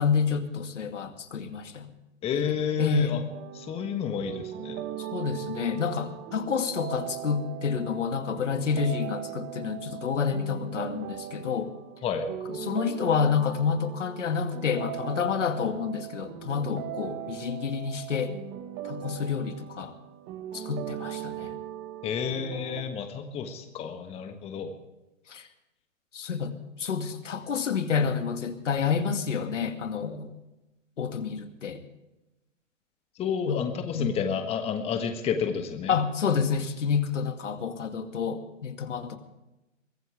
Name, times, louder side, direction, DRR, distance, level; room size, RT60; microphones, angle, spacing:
voice 1, 0.0-1.9 2.8-3.2 5.0-11.7 12.5-18.3 18.8-19.9 20.5-21.6 25.3-25.5 26.1-30.3 31.0-31.8 33.5-33.6 33.9-34.1 35.9-39.2, left 6 dB, 70° left, 7 dB, 2.3 m, -29 dB
voice 2, 2.2-3.2 3.5-4.8 12.0-12.3 22.0-24.8 33.2-36.0, left 7 dB, 15° left, 6 dB, 1.4 m, -30 dB
sound 1, 3.3-22.8, right 12 dB, 25° right, 1.3 m, -39 dB
23.0 x 15.5 x 3.4 m, 0.97 s
hypercardioid pair, 130°, 38 cm